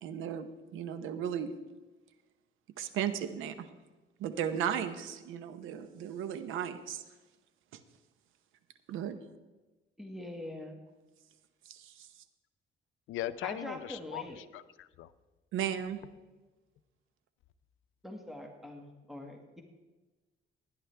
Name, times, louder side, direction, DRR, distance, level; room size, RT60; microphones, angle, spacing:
voice 1, 0.0-1.5 2.8-3.7 4.2-7.0 8.9-9.2 11.7-12.1 15.5-16.0, right 9 dB, 90° right, 1.0 m, -35 dB
voice 2, 10.0-10.8 13.4-14.4 18.0-19.6, left 1 dB, ahead, 1.8 m, -43 dB
voice 3, 13.1-15.1, left 13 dB, 85° left, 0.6 m, -39 dB
17.5 x 10.5 x 3.4 m
cardioid pair, 90°, 20 cm